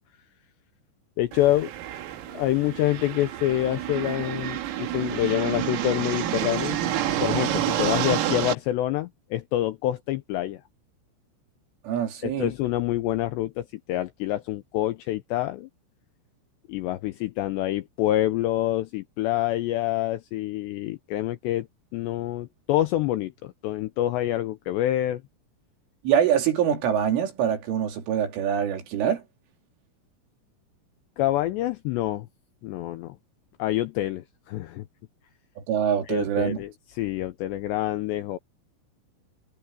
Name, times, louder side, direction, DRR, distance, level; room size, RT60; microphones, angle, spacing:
voice 1, 1.2-1.7 2.3-6.8 7.2-10.6 12.2-15.7 16.7-21.7 21.9-25.2 31.2-32.3 32.6-33.2 33.6-34.8 36.1-38.4, left 14 dB, 90° left, 2.5 m, -27 dB
sound 1, 1.3-8.5, right 11 dB, 85° right, 4.7 m, -29 dB
voice 2, 11.9-12.5 26.1-29.2 35.7-36.6, right 9 dB, 70° right, 5.4 m, -24 dB
omnidirectional pair, 5.9 m